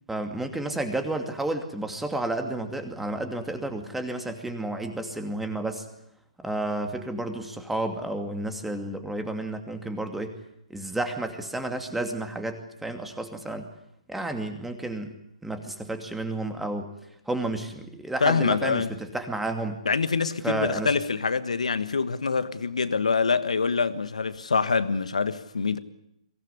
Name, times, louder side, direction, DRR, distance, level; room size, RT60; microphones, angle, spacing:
voice 1, 0.1-5.9 6.4-10.3 10.7-13.7 14.1-15.2 15.4-16.9 17.3-19.8 20.4-21.0, right 2 dB, 5° right, 2.6 m, -31 dB
voice 2, 18.2-18.9 19.8-25.8, left 5 dB, 80° left, 1.5 m, -25 dB
23.0 x 18.0 x 9.8 m
figure-of-eight pair, 130°, 4 cm